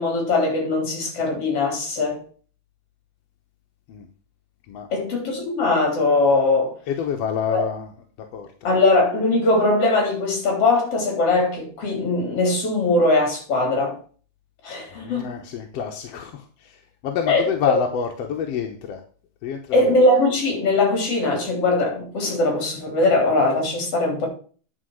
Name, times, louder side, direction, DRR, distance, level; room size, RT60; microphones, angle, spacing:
voice 1, 0.0-2.2 4.9-6.8 7.5-7.7 8.6-14.0 14.6-15.3 17.3-17.5 19.7-24.3, left 2 dB, 50° left, 4.2 m, -20 dB
voice 2, 6.9-8.0 8.3-8.7 14.9-19.0 19.4-20.0, left 7 dB, 65° left, 1.8 m, -28 dB
10.0 x 5.1 x 6.3 m
omnidirectional pair, 3.5 m